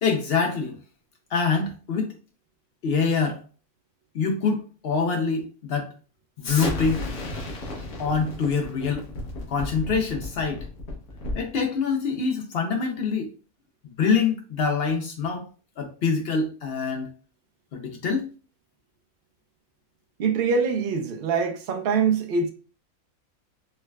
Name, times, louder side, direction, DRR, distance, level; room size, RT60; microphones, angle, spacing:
voice 1, 0.0-0.8 1.3-2.1 2.8-3.4 4.1-5.9 6.4-7.1 8.0-9.0 9.5-10.6 11.3-13.3 14.0-15.5 15.8-17.1 17.7-18.3, left 5 dB, 70° left, 0.6 m, -25 dB
Explosion, 6.4-11.5, left 2 dB, 90° left, 1.4 m, -33 dB
voice 2, 20.2-22.5, right 5 dB, 70° right, 0.5 m, -24 dB
4.5 x 2.1 x 2.3 m
omnidirectional pair, 1.5 m